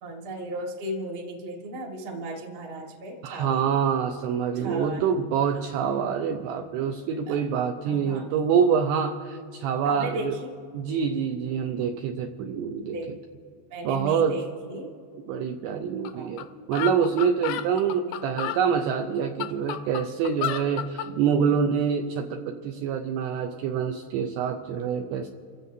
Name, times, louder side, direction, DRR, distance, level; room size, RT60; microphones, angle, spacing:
voice 1, 0.0-3.6 4.6-5.2 5.5-5.7 7.3-7.4 7.9-8.3 9.8-10.5 12.9-13.1 13.7-14.9 16.1-16.3 18.1-18.2 21.0-21.1, right 1 dB, 45° right, 0 dB, 1.8 m, -36 dB
voice 2, 3.2-10.3 10.7-13.0 13.9-14.3 15.3-25.3, right 7 dB, 80° right, 4 dB, 2.5 m, -26 dB
sound 1, 16.1-16.2 16.4-16.5 16.7-18.6 19.2-21.1, left 12 dB, 85° left, 2.4 m, -31 dB
28.5 x 15.5 x 2.7 m, 2.4 s
omnidirectional pair, 5.3 m